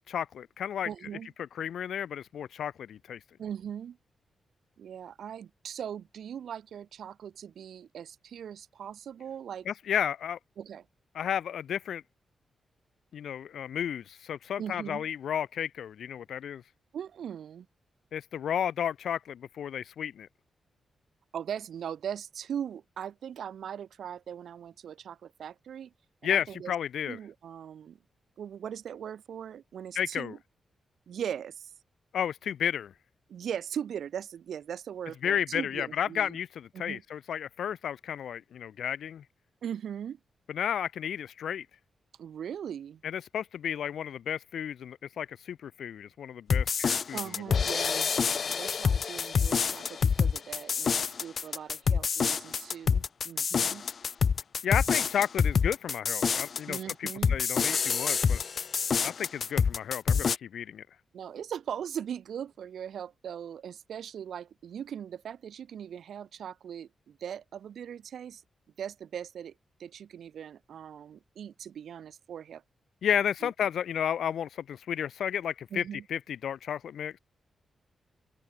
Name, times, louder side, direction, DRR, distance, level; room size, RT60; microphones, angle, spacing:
voice 1, 0.0-0.9 1.4-3.2 9.6-10.4 11.1-12.0 13.1-16.6 18.1-20.3 26.2-27.2 29.9-30.3 32.1-32.9 35.2-39.2 40.5-41.7 43.0-47.2 47.5-47.7 54.6-58.4 59.0-60.9 73.0-77.2, left 9 dB, 85° left, 3.0 m, -32 dB
voice 2, 0.8-1.3 3.4-4.0 4.8-9.7 10.6-10.9 14.6-15.1 16.9-17.7 21.3-25.9 26.2-26.7 27.1-28.0 28.4-30.4 31.1-31.7 33.3-36.4 36.7-37.0 39.6-40.2 42.2-43.0 47.1-48.2 48.6-53.9 56.7-57.4 61.1-68.4 68.8-69.5 69.8-72.6 73.4-73.5 75.7-76.0, right 8 dB, 80° right, 3.7 m, -39 dB
sound 1, 46.5-60.4, left 6 dB, 50° left, 0.3 m, -27 dB
open air
wide cardioid pair, 130°, 0 cm